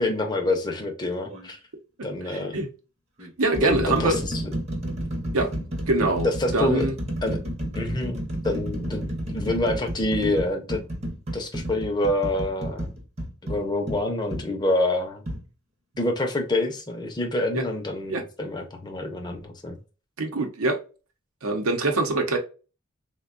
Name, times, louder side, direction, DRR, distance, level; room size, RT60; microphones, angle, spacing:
voice 1, 0.0-1.6 2.0-2.6 3.6-4.4 6.2-6.9 7.2-7.4 7.7-8.2 8.4-10.8 11.3-12.9 13.4-15.2 16.0-19.8, left 1 dB, 20° left, 0.5 m, -27 dB
sound 1, 1.2-1.5 2.4-2.5 3.2-14.5 15.3-15.4, right 1 dB, 30° right, 0.7 m, -31 dB
voice 2, 2.3-2.7 3.4-4.2 5.3-5.5 5.9-7.0 17.5-17.6 18.1-18.2 20.2-20.8 21.4-22.4, right 2 dB, 85° right, 0.8 m, -24 dB
3.4 x 2.2 x 2.3 m
head